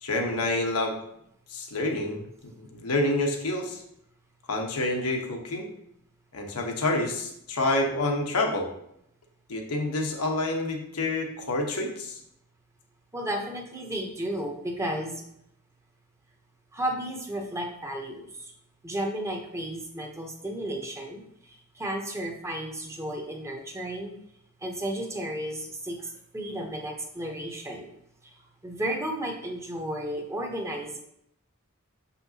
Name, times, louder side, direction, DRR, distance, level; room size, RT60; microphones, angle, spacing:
voice 1, 0.0-1.0 1.5-3.8 4.5-5.7 6.3-8.7 9.5-12.2, left 2 dB, 90° left, 2 dB, 1.1 m, -28 dB
voice 2, 13.1-15.2 16.7-18.5 18.8-21.2 21.8-24.1 24.6-27.9 28.6-31.0, right 1 dB, 15° right, 2 dB, 0.8 m, -33 dB
6.6 x 5.5 x 2.8 m, 0.75 s
head